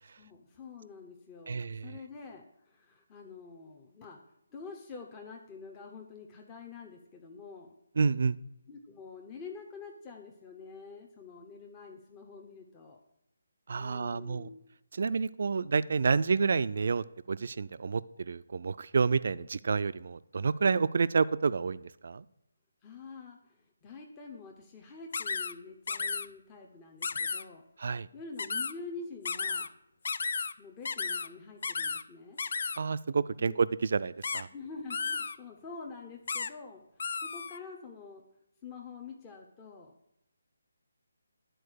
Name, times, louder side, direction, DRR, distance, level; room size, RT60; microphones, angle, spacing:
voice 1, 0.1-4.2 4.5-7.7 8.7-13.0 13.7-14.6 22.8-23.4 23.8-27.6 28.1-29.7 30.6-32.4 33.4-33.6 34.5-38.2 38.6-39.9, left 4 dB, 20° left, 1 dB, 0.8 m, -47 dB
voice 2, 1.5-2.0 8.0-8.4 13.7-14.5 14.9-22.2 27.8-28.1 32.8-34.5, right 5 dB, 55° right, 16 dB, 0.3 m, -29 dB
sound 1, 25.1-25.5 25.9-26.3 27.0-27.4 28.4-28.7 29.3-29.7 30.1-30.5 30.9-31.3 31.6-32.0 32.4-32.8 34.2-34.4 34.9-35.4 36.3-36.5 37.0-37.6, left 5 dB, 55° left, 0.3 m, -33 dB
10.0 x 4.4 x 6.5 m, 0.83 s
figure-of-eight pair, 150°, 0 cm